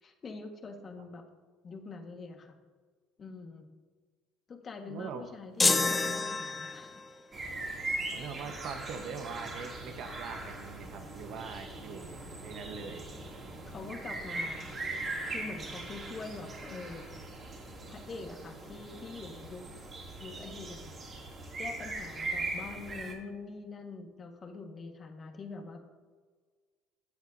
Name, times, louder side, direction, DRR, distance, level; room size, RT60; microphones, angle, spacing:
voice 1, 0.0-1.2 1.6-2.5 3.2-3.7 4.5-6.9 7.7-7.9 8.4-8.5 13.7-14.8 15.3-17.0 17.9-19.7 20.2-21.2 21.6-25.8, left 4 dB, 35° left, 4 dB, 1.4 m, -44 dB
voice 2, 4.8-5.3 8.1-13.1, right 5 dB, 65° right, 7 dB, 1.0 m, -42 dB
sound 1, 5.6-7.1, left 3 dB, 20° left, 0.6 m, -28 dB
sound 2, 7.3-23.1, right 2 dB, 40° right, 2.5 m, -40 dB
13.0 x 8.1 x 2.7 m, 1.5 s
supercardioid pair, 85°, 0 cm